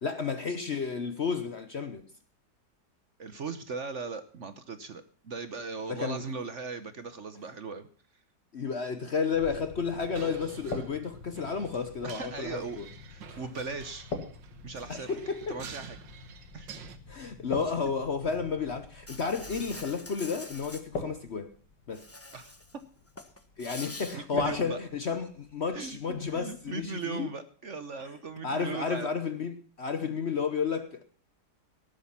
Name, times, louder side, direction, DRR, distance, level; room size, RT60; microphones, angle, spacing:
voice 1, 0.0-2.0 5.9-6.2 8.5-12.9 13.3-13.4 14.9-15.6 17.1-21.5 21.9-22.1 23.6-27.3 28.4-31.0, left 5 dB, 45° left, 1.0 m, -32 dB
voice 2, 3.2-7.9 12.0-12.8 13.1-14.1 14.6-15.2 15.5-16.0 16.5-16.7 17.2-17.3 22.3-22.5 24.1-24.8 25.7-26.0 26.3-29.1, right 4 dB, 50° right, 1.1 m, -38 dB
sound 1, 9.3-26.9, left 3 dB, 70° left, 3.0 m, -44 dB
sound 2, 10.1-17.0, right 8 dB, 85° right, 1.9 m, -48 dB
Insect, 19.1-20.8 21.9-22.7 23.1-24.2, left 2 dB, 10° left, 0.7 m, -45 dB
18.0 x 8.8 x 5.6 m
omnidirectional pair, 1.9 m